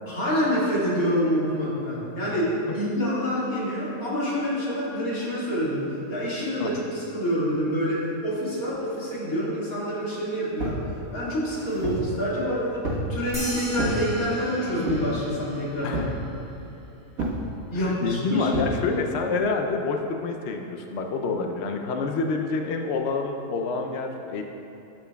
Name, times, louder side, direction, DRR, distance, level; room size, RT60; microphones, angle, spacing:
voice 1, 0.1-10.8 11.1-16.0 17.7-18.5, equal, 85° left, -8 dB, 2.6 m, -27 dB
sound 1, 10.6-10.9 11.4-12.1 12.8-13.1 13.8-14.0 14.9-15.2 15.9-16.2 17.2-17.4 18.5-18.7, right 1 dB, 80° right, 1.8 m, -29 dB
sound 2, 13.3-16.1, equal, 5° left, 1.8 m, -38 dB
voice 2, 15.8-16.2 17.7-24.4, left 4 dB, 65° left, 3 dB, 0.7 m, -28 dB
12.5 x 7.0 x 2.3 m, 2.9 s
omnidirectional pair, 1.5 m